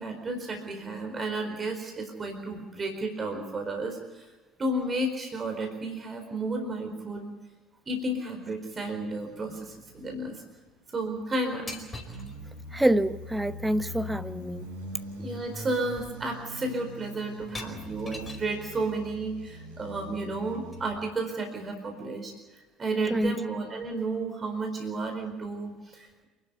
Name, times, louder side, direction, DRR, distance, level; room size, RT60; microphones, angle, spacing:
voice 1, 0.0-4.3 4.6-7.3 7.9-10.4 10.9-11.8 15.2-22.3 22.8-26.3, right 2 dB, 30° right, 4.5 m, -32 dB
sound 1, 8.8-10.5 11.1-21.0, left 1 dB, 75° right, 5.0 m, -43 dB
sound 2, 11.7-12.3 14.3-14.4 14.8-15.1 15.5-15.7 16.0-16.5 17.4-18.6 20.2-21.2, left 2 dB, 20° left, 5.0 m, -44 dB
voice 2, 12.7-14.7 23.1-23.4, right 1 dB, 5° right, 1.0 m, -26 dB
28.0 x 12.5 x 9.5 m
figure-of-eight pair, 60°, 0 cm